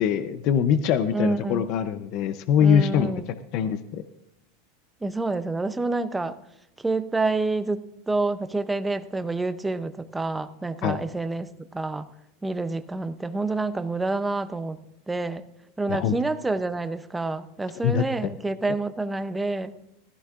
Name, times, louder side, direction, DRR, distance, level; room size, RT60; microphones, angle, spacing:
voice 1, 0.0-3.2 3.5-4.0 10.8-11.0 15.9-16.2 17.8-18.0, left 8 dB, 40° left, 11 dB, 0.6 m, -23 dB
voice 2, 1.1-1.6 2.6-3.3 5.0-6.4 6.8-12.1 12.4-14.8 15.1-15.4 15.8-19.8, right 3 dB, 5° right, 11 dB, 0.6 m, -28 dB
15.5 x 15.0 x 2.5 m, 0.84 s
supercardioid pair, 165°, 0 cm